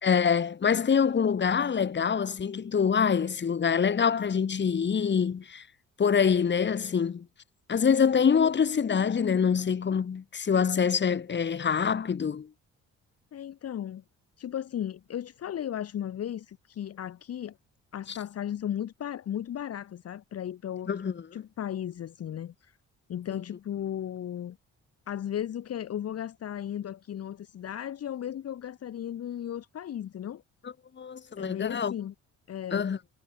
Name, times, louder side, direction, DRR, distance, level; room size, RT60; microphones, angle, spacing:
voice 1, 0.0-5.6 6.0-7.3 7.7-12.5 20.9-21.1 23.3-23.4 31.0-31.9 32.7-33.0, left 6 dB, 35° left, 1.6 m, -25 dB
voice 2, 13.3-14.0 14.4-17.6 17.9-20.9 21.3-22.8 23.1-24.6 25.1-30.4 31.4-32.1 32.5-32.9, left 10 dB, 55° left, 1.1 m, -35 dB
cardioid pair, 90°, 30 cm